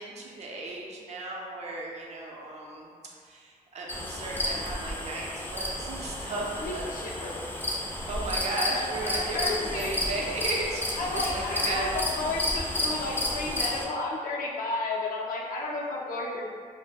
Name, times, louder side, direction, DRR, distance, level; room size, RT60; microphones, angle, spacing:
voice 1, 0.0-2.9 3.2-6.9 8.1-11.9, right 2 dB, 50° right, -2 dB, 0.5 m, -35 dB
sound 1, 3.9-13.9, left 1 dB, 15° left, 0.4 m, -32 dB
voice 2, 6.6-7.4 9.0-10.0 11.0-16.6, left 2 dB, 75° left, -3 dB, 0.5 m, -32 dB
2.2 x 2.0 x 3.4 m, 2.1 s
cardioid pair, 95°, 14 cm